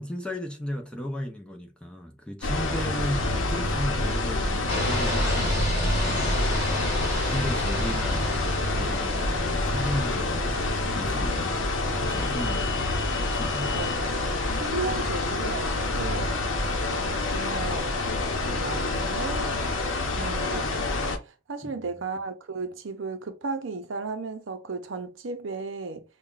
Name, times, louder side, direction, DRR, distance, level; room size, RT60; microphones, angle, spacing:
voice 1, 0.0-8.3 8.8-10.6 10.9-11.7 12.0-12.7 13.3-13.8 21.8-21.9, equal, 5° left, 0.5 m, -35 dB
sound 1, 2.4-21.2, left 2 dB, 75° left, 0.8 m, -27 dB
sound 2, 4.7-10.1, left 2 dB, 30° left, 2.0 m, -31 dB
voice 2, 14.6-16.3 16.9-17.9 18.5-19.6 20.2-26.0, right 3 dB, 70° right, 0.6 m, -34 dB
5.5 x 2.3 x 2.4 m
head